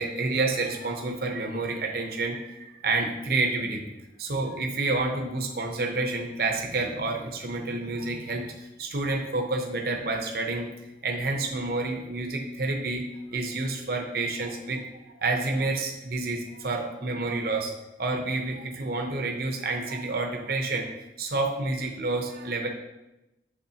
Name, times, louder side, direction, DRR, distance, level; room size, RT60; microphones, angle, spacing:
voice 1, 0.0-3.8 4.2-8.5 8.8-10.7 11.0-13.0 13.3-14.8 15.2-17.7 18.0-20.9 21.2-22.7, right 3 dB, 55° right, 2 dB, 0.7 m, -29 dB
6.8 x 6.2 x 2.8 m, 0.97 s
head